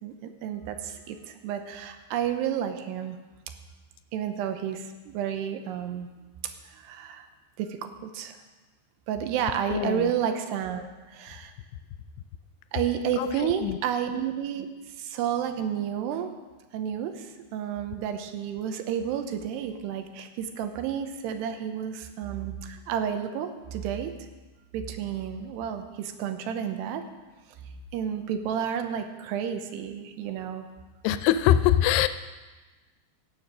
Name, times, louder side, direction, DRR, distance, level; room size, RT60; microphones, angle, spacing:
voice 1, 0.0-3.2 4.1-6.1 6.7-7.3 7.6-8.4 9.1-11.5 12.7-14.7 15.0-16.3 16.7-24.1 24.7-27.0 27.9-30.7, right 9 dB, 85° right, 7 dB, 3.0 m, -31 dB
voice 2, 9.7-10.1 13.2-13.8 31.0-32.1, left 12 dB, 85° left, 12 dB, 2.5 m, -23 dB
17.0 x 7.2 x 6.4 m, 1.2 s
omnidirectional pair, 4.8 m